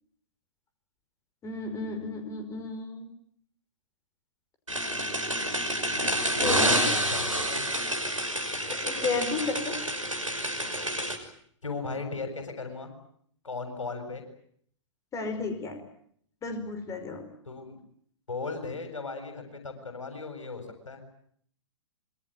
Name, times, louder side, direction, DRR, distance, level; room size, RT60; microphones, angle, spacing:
voice 1, 1.4-3.1 6.4-6.9 7.7-7.9 8.8-9.8 15.1-15.8 16.4-17.2, left 4 dB, 20° left, 6 dB, 5.2 m, -33 dB
sound 1, 4.7-11.2, right 1 dB, 90° right, 6.3 m, -28 dB
voice 2, 6.0-7.6 11.6-12.9 13.4-14.2 17.4-17.8 18.3-21.0, left 4 dB, 75° left, 7 dB, 7.5 m, -37 dB
26.0 x 24.0 x 9.1 m, 0.66 s
figure-of-eight pair, 110°, 16 cm